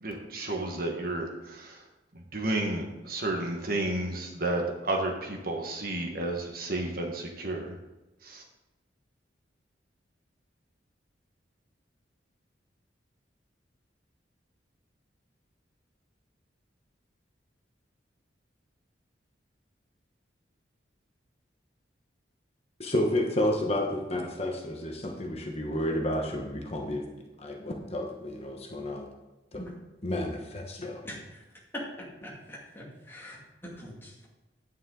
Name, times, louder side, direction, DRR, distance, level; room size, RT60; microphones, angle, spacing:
voice 1, 0.0-1.8 2.1-7.8 8.2-8.4, right 2 dB, 50° right, 1 dB, 1.5 m, -32 dB
voice 2, 22.8-27.0 27.4-29.1 29.5-29.6 30.0-31.0, left 1 dB, 35° left, 1 dB, 1.2 m, -31 dB
voice 3, 31.0-31.4 31.7-34.3, left 1 dB, 10° left, -4 dB, 2.3 m, -42 dB
9.6 x 9.1 x 3.9 m, 1.0 s
head